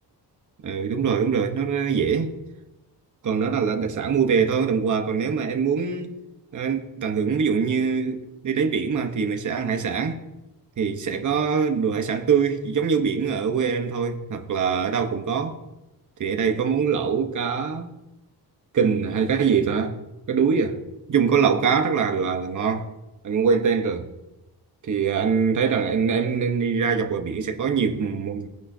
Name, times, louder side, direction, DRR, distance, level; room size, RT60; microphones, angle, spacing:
voice 1, 0.6-2.3 3.2-6.2 6.5-10.2 10.8-15.6 16.2-17.9 18.7-20.0 20.3-20.8 21.1-22.9 23.2-24.1 24.8-28.5, right 6 dB, 45° right, 1.2 m, -23 dB
19.5 x 9.6 x 2.8 m
wide cardioid pair, 170°, 41 cm